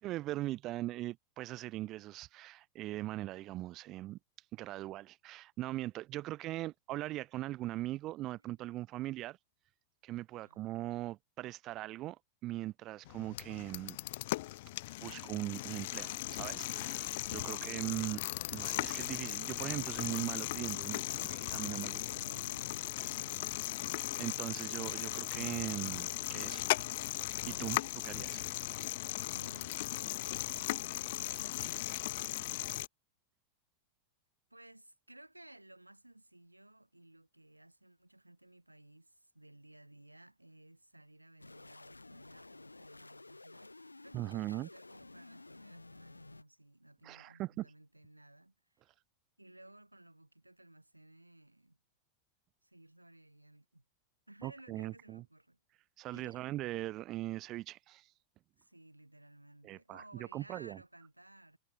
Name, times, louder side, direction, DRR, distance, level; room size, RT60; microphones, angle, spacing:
voice 1, 0.0-4.2 4.5-9.4 10.0-14.0 15.0-18.2 18.5-22.0 24.2-26.7 27.4-28.4 44.1-44.7 47.0-47.7 54.4-55.2 56.0-58.1 59.6-60.8, right 16 dB, 35° right, 3.5 m, -40 dB
voice 2, 8.2-8.8 10.4-10.8 17.3-17.8 20.7-23.4 28.0-28.1 29.3-32.4 34.5-48.8 49.4-51.8 52.6-53.8 54.3-55.6 56.1-56.5 58.6-61.6, right 1 dB, 85° right, 7.2 m, -58 dB
sound 1, 13.0-32.9, left 18 dB, 50° left, 1.5 m, -38 dB
sound 2, 41.4-46.4, left 2 dB, 80° left, 3.1 m, -53 dB
figure-of-eight pair, 90°, 0 cm